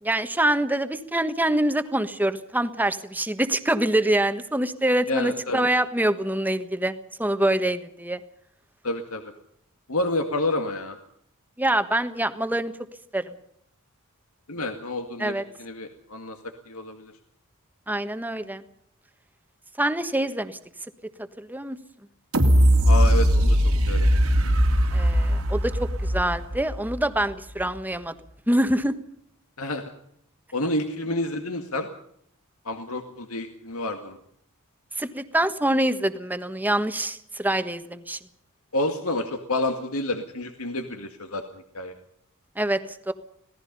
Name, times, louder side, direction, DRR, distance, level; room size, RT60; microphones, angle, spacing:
voice 1, 0.0-6.9 7.2-8.2 11.6-12.7 13.1-13.3 15.2-15.4 17.9-18.6 19.8-20.6 21.0-21.1 21.4-21.8 24.9-28.1 28.5-28.9 35.0-38.2 42.5-42.8 43.1-43.2, right 1 dB, 10° right, 9 dB, 1.4 m, -25 dB
voice 2, 5.1-5.7 8.8-9.3 9.9-11.0 14.5-16.4 16.7-17.1 22.9-23.6 23.9-24.1 29.6-29.9 30.5-31.9 32.6-34.2 38.7-41.9, left 2 dB, 75° left, 5 dB, 2.1 m, -29 dB
sound 1, 22.3-27.2 27.7-27.8, equal, 80° right, 3.0 m, -20 dB
26.5 x 18.0 x 5.5 m, 0.69 s
head